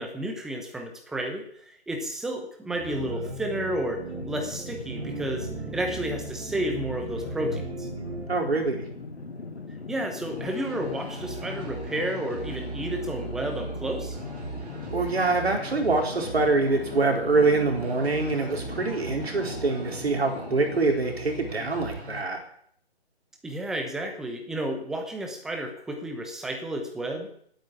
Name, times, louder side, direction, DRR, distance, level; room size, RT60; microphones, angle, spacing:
voice 1, 0.0-7.9 9.9-14.2 23.4-27.3, right 1 dB, ahead, 4 dB, 0.8 m, -32 dB
sound 1, 2.7-8.3, right 3 dB, 85° right, 3.7 m, -37 dB
sound 2, 4.1-20.8, left 4 dB, 80° left, 3.3 m, -40 dB
voice 2, 8.3-8.8 14.9-22.4, right 3 dB, 65° right, 2 dB, 4.3 m, -25 dB
sound 3, 10.3-22.2, right 2 dB, 35° right, 5.6 m, -39 dB
16.5 x 9.2 x 8.6 m, 0.65 s
figure-of-eight pair, 150°, 33 cm